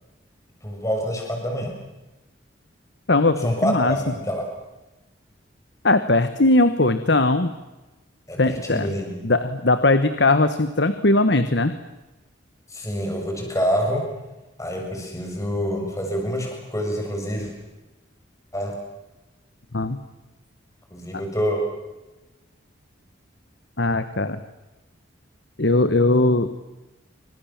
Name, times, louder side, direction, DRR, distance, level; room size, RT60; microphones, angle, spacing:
voice 1, 0.6-1.7 3.4-4.4 8.3-9.2 12.7-14.0 14.6-17.5 18.5-18.7 20.9-21.6, equal, 15° left, 1 dB, 7.0 m, -26 dB
voice 2, 3.1-4.0 5.8-7.5 8.4-8.9 9.2-11.8 19.7-20.0 23.8-24.4 25.6-26.5, left 2 dB, 60° left, 11 dB, 1.3 m, -19 dB
28.5 x 25.5 x 7.4 m, 1.1 s
head